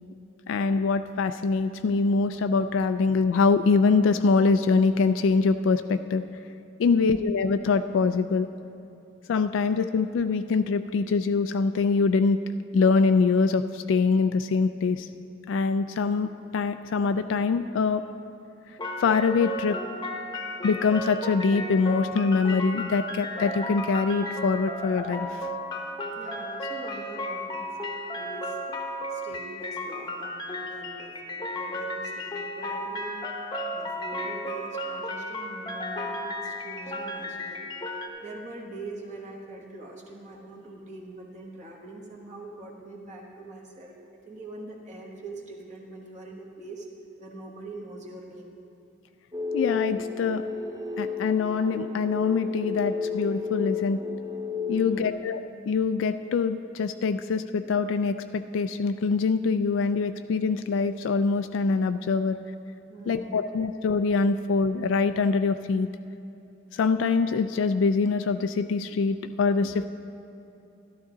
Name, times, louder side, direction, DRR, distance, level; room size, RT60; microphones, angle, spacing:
voice 1, 0.5-6.2 6.8-8.5 9.3-12.4 12.7-15.1 15.5-18.0 19.0-19.8 20.6-25.5 49.5-50.4 51.0-54.0 54.7-55.4 55.7-62.4 63.1-65.9 66.7-69.8, left 4 dB, 70° left, 9 dB, 0.3 m, -24 dB
sound 1, 18.8-38.1, left 1 dB, 20° left, 0.9 m, -34 dB
voice 2, 26.2-28.6 29.1-33.3 33.7-37.7 38.2-46.9 47.2-48.6 54.7-55.2 62.9-63.4, right 2 dB, 40° right, -2 dB, 1.3 m, -43 dB
sound 2, 49.3-55.1, left 5 dB, 20° right, 0.5 m, -31 dB
12.0 x 12.0 x 3.8 m, 2.9 s
head